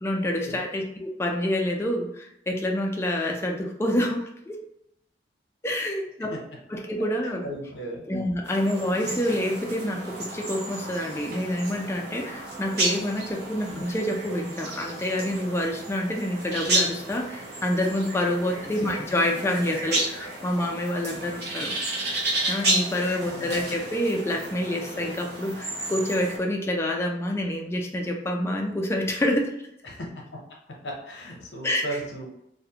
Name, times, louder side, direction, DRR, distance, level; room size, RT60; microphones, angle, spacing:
voice 1, 0.0-4.6 5.6-6.3 6.7-7.4 8.1-21.7 22.5-29.5 31.6-32.0, left 1 dB, 15° left, 1 dB, 0.3 m, -27 dB
voice 2, 7.2-8.1 13.7-13.8 18.5-19.0 23.3-23.7 29.8-30.1 30.8-32.3, right 1 dB, 70° left, 0 dB, 0.7 m, -36 dB
sound 1, 8.4-26.4, right 2 dB, 65° right, 0.7 m, -32 dB
2.4 x 2.1 x 2.7 m, 0.76 s
head